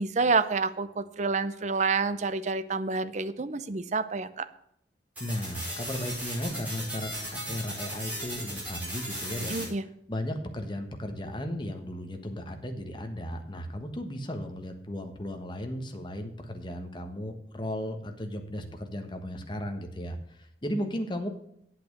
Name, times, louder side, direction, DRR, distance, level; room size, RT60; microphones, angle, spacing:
voice 1, 0.0-4.5 9.4-9.8, right 4 dB, 40° right, 12 dB, 0.6 m, -28 dB
voice 2, 5.2-9.8 10.1-21.3, equal, 25° left, 5 dB, 1.3 m, -35 dB
sound 1, 5.2-9.6, right 1 dB, 10° right, 5.3 m, -37 dB
8.8 x 8.0 x 6.7 m, 0.72 s
head